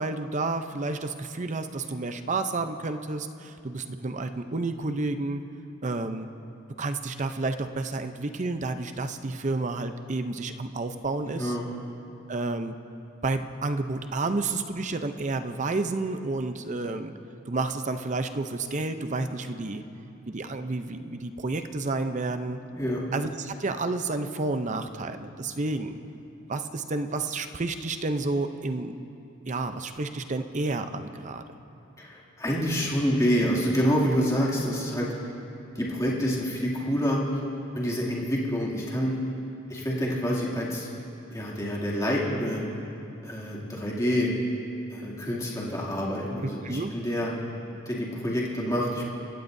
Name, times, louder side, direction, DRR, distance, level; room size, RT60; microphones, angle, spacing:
voice 1, 0.0-5.4 5.8-6.3 6.8-11.6 12.3-12.8 13.2-17.1 17.5-19.8 20.3-22.6 23.1-26.0 26.5-29.0 29.5-31.4 46.4-46.9, right 3 dB, 40° right, 8 dB, 0.7 m, -30 dB
voice 2, 11.3-11.6 22.7-23.0 32.0-35.1 35.7-37.2 37.7-39.1 39.7-40.9 41.3-42.6 43.2-44.3 44.9-47.3 47.9-49.1, equal, 15° left, -5 dB, 2.6 m, -27 dB
25.5 x 16.0 x 2.7 m, 2.8 s
head